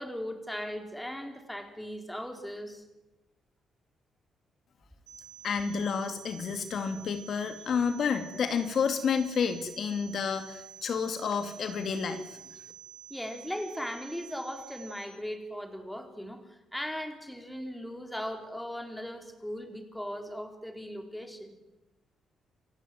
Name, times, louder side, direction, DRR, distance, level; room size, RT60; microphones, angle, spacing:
voice 1, 0.0-2.8 13.1-21.5, equal, 5° left, 5 dB, 4.2 m, -38 dB
sound 1, 5.1-15.1, right 8 dB, 75° right, 7.6 m, -49 dB
voice 2, 5.4-12.4, left 6 dB, 60° left, 7 dB, 2.5 m, -30 dB
28.0 x 15.5 x 9.5 m, 1.0 s
cardioid pair, 90°, 0 cm